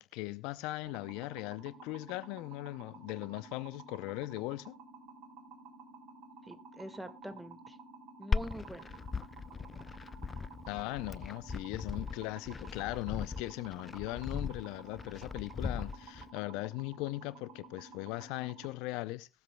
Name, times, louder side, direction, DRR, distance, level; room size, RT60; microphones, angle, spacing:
voice 1, 0.0-4.8 10.7-19.3, left 19 dB, 75° left, 0.6 m, -39 dB
sound 1, 0.8-18.7, right 3 dB, 65° right, 3.8 m, -53 dB
voice 2, 6.4-7.8 8.2-9.0, right 1 dB, 10° right, 1.8 m, -45 dB
Glass, 8.3-16.3, left 4 dB, 30° left, 0.5 m, -38 dB
20.5 x 7.6 x 2.2 m
hypercardioid pair, 65°, 0 cm